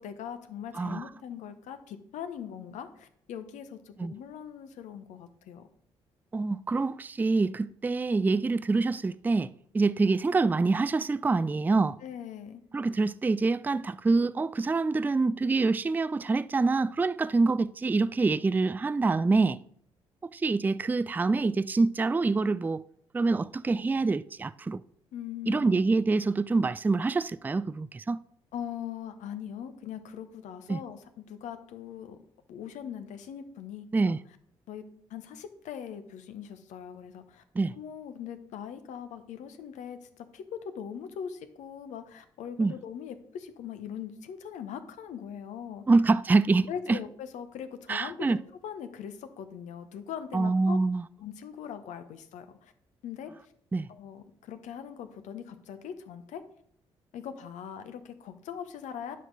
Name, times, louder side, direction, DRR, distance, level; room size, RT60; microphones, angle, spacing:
voice 1, 0.0-5.7 12.0-12.6 25.1-25.8 28.5-32.2 32.5-34.1 34.7-37.4 37.7-45.8 46.7-48.4 48.6-50.8 51.2-52.7 53.0-53.3 53.9-56.4 57.1-59.2, left 8 dB, 60° left, 0.9 m, -41 dB
voice 2, 0.7-1.0 4.0-4.1 6.3-12.0 12.7-19.6 20.3-22.8 23.1-24.8 25.5-28.2 30.7-30.8 33.9-34.2 37.6-37.8 42.6-42.7 45.9-47.0 47.9-48.4 50.3-51.0 53.7-53.9, right 3 dB, 10° right, 0.3 m, -26 dB
10.0 x 6.0 x 4.0 m
figure-of-eight pair, 40°, 14 cm